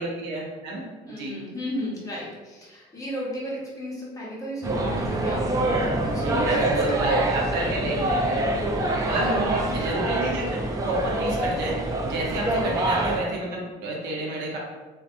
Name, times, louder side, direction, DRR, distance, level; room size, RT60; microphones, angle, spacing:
voice 1, 0.0-1.3 6.1-8.5 9.0-14.6, right 1 dB, 85° right, -2 dB, 0.7 m, -30 dB
voice 2, 1.1-6.6 6.9-7.2 7.5-7.9 8.8-9.9 12.5-12.7, equal, 20° left, -6 dB, 0.9 m, -35 dB
sound 1, 4.6-13.2, right 1 dB, 20° right, 0.3 m, -25 dB
2.6 x 2.2 x 2.5 m, 1.2 s
cardioid pair, 110°, 17 cm